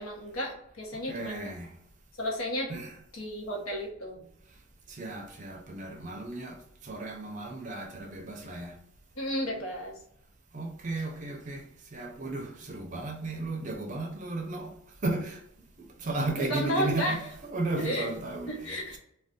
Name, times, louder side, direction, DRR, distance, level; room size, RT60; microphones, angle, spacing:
voice 1, 0.0-1.5 2.2-2.7 3.1-4.2 9.2-9.9 16.4-17.3 17.8-18.1 18.5-19.0, equal, 85° left, 0.9 m, -32 dB
voice 2, 1.1-1.7 2.7-2.9 4.9-8.8 10.5-11.6 11.9-14.8 15.0-15.4 15.8-17.2 17.5-19.0, right 2 dB, 35° right, 0.5 m, -34 dB
2.5 x 2.3 x 3.5 m
head